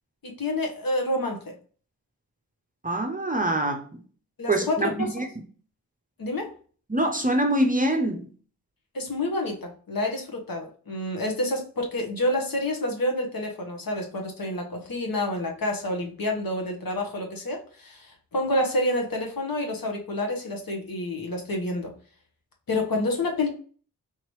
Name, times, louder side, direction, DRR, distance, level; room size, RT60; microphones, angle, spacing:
voice 1, 0.2-1.5 4.4-5.1 6.2-6.5 8.9-21.9 22.7-23.5, left 1 dB, 50° left, 2 dB, 1.3 m, -28 dB
voice 2, 2.8-3.8 4.5-5.3 6.9-8.3, right 1 dB, 20° right, 4 dB, 0.7 m, -24 dB
3.9 x 2.9 x 3.1 m, 0.42 s
supercardioid pair, 45°, 44 cm